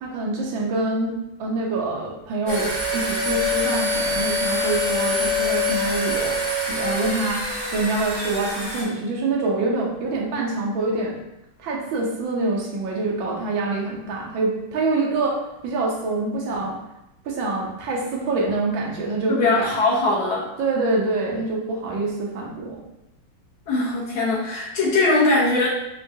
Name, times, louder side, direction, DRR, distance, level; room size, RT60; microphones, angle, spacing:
voice 1, 0.0-11.2 11.6-15.4 15.6-16.8 17.2-19.7 20.6-22.8, right 3 dB, 80° right, -2 dB, 1.5 m, -25 dB
sound 1, 2.5-8.8, left 2 dB, 40° right, 0.6 m, -25 dB
voice 2, 19.3-20.5 23.7-25.7, left 2 dB, 85° left, -6 dB, 1.8 m, -20 dB
4.7 x 2.3 x 2.6 m, 0.88 s
omnidirectional pair, 2.1 m